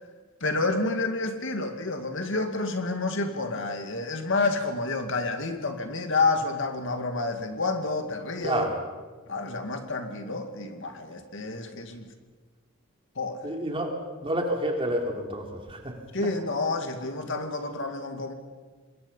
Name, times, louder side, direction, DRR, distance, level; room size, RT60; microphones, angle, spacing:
voice 1, 0.4-8.7 9.3-12.1 13.2-13.4 16.1-18.3, left 3 dB, 60° left, 6 dB, 2.2 m, -29 dB
voice 2, 13.4-13.9 14.2-15.9, right 1 dB, 25° right, 1 dB, 3.4 m, -29 dB
26.0 x 22.0 x 5.6 m, 1.3 s
head